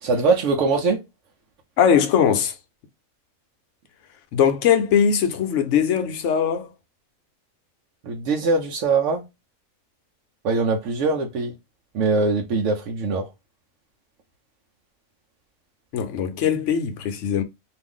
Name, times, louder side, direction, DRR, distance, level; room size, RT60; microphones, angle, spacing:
voice 1, 0.0-1.0 8.0-9.2 10.4-11.5 11.9-13.3, right 3 dB, 65° right, 0.9 m, -22 dB
voice 2, 1.8-2.5 4.3-6.7 15.9-17.4, left 8 dB, 65° left, 0.9 m, -20 dB
2.5 x 2.5 x 3.5 m
omnidirectional pair, 1.5 m